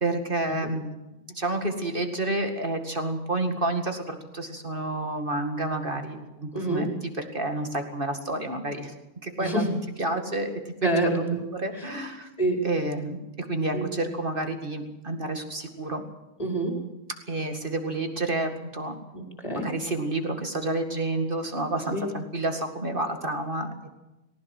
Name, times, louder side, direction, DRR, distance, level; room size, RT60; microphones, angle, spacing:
voice 1, 0.0-1.0 1.3-6.9 7.2-8.9 9.2-12.3 12.6-16.0 17.3-18.9 19.5-23.9, right 2 dB, 20° right, 6 dB, 1.6 m, -29 dB
voice 2, 6.5-6.8 9.4-9.7 10.8-11.4 12.4-12.6 13.7-13.8 16.4-16.7 19.1-19.7 21.9-22.0, right 1 dB, 10° left, 2 dB, 4.8 m, -27 dB
20.0 x 18.5 x 7.8 m, 1.0 s
omnidirectional pair, 3.6 m